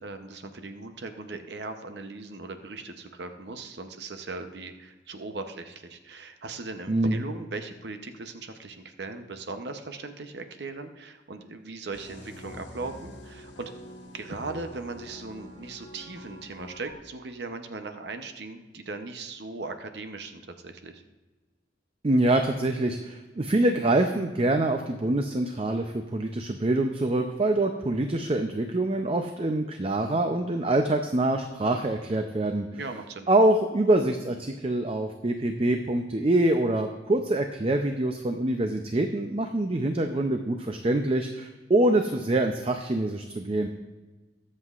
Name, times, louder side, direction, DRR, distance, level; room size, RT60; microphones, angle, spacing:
voice 1, 0.0-13.7 14.1-21.0 32.7-33.3, right 3 dB, 60° right, 7 dB, 0.7 m, -38 dB
voice 2, 6.9-7.2 22.0-32.7 33.3-43.7, right 1 dB, 30° right, 6 dB, 0.5 m, -25 dB
sound 1, 11.9-16.9, equal, 75° left, 1.6 m, -45 dB
21.5 x 7.6 x 2.4 m, 1.2 s
head